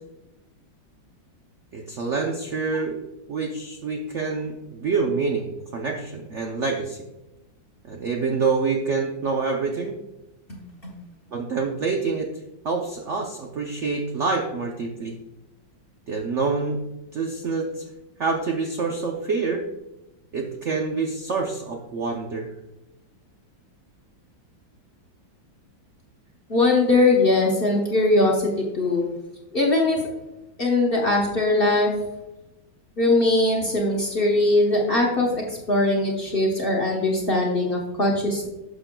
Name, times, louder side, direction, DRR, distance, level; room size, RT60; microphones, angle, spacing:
voice 1, 1.7-3.0 3.3-7.0 7.9-10.0 11.3-12.3 12.6-15.1 16.1-16.8 17.1-17.8 18.2-19.6 20.3-22.5, right 4 dB, 90° right, 1 dB, 0.6 m, -26 dB
voice 2, 10.5-10.9 26.5-29.0 29.5-30.1 30.6-32.0 33.0-38.5, left 2 dB, 40° left, -2 dB, 0.8 m, -21 dB
11.5 x 6.1 x 2.2 m, 0.97 s
omnidirectional pair, 2.2 m